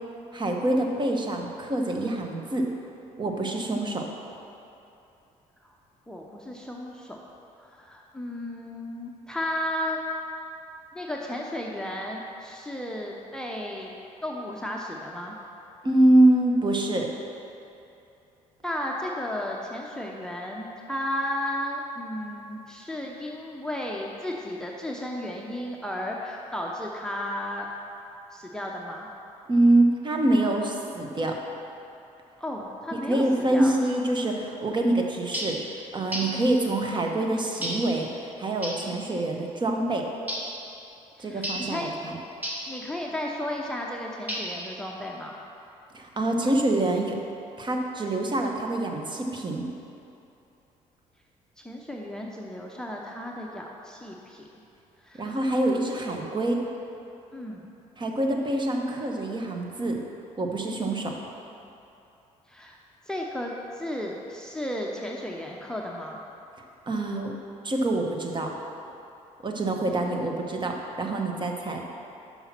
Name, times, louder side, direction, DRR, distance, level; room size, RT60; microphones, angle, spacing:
voice 1, 0.3-2.7 3.2-4.1 15.8-17.1 29.5-31.4 33.0-35.6 35.9-40.1 41.2-42.2 45.9-47.2 47.6-49.7 55.2-56.6 58.0-60.0 60.4-61.1 66.9-67.3 67.6-68.5 69.4-71.8, right 1 dB, 30° right, 2 dB, 1.1 m, -25 dB
voice 2, 6.1-7.2 7.6-10.0 10.9-13.9 14.2-15.4 18.6-27.7 28.3-29.1 32.4-33.2 33.5-33.7 36.3-36.5 41.2-42.0 42.7-45.3 51.6-54.5 55.0-55.4 57.3-57.7 62.5-62.8 63.1-66.2, left 1 dB, 5° left, -1 dB, 0.7 m, -34 dB
sound 1, 35.3-35.6 36.1-36.4 37.6-37.9 38.6-38.9 40.3-40.6 41.4-41.7 42.4-42.7 44.3-44.7, equal, 10° right, 1.4 m, -32 dB
5.8 x 5.5 x 5.9 m, 2.8 s
supercardioid pair, 70°, 15 cm